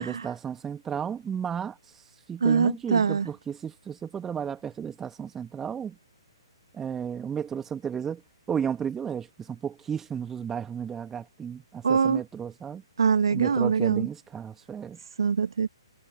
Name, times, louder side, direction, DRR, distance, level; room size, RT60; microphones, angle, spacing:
voice 1, 0.0-1.8 2.3-6.0 6.7-8.2 8.5-12.8 13.3-15.0, right 7 dB, 10° right, 2.5 m, -33 dB
voice 2, 2.4-3.3 11.8-12.2 13.0-14.1 15.2-15.7, right 6 dB, 60° right, 1.5 m, -23 dB
figure-of-eight pair, 130°, 3 cm